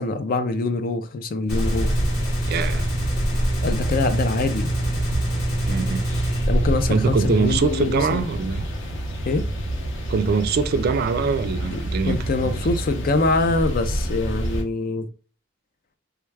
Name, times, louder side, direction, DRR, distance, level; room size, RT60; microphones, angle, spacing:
voice 1, 0.0-1.9 3.6-4.7 6.5-8.2 9.3-9.5 11.7-11.8 12.1-15.1, left 3 dB, 40° left, 0.4 m, -24 dB
Gunshot gunfire, 1.5-6.5, left 2 dB, 85° left, 1.7 m, -37 dB
sound 1, 1.5-14.6, equal, 60° left, 0.8 m, -27 dB
sound 2, 1.9-7.6, right 1 dB, 15° left, 1.0 m, -26 dB
voice 2, 2.4-2.9 5.6-6.0 6.9-8.6 10.1-12.2 12.4-12.6, right 5 dB, 45° right, 0.3 m, -23 dB
3.4 x 2.3 x 3.2 m
head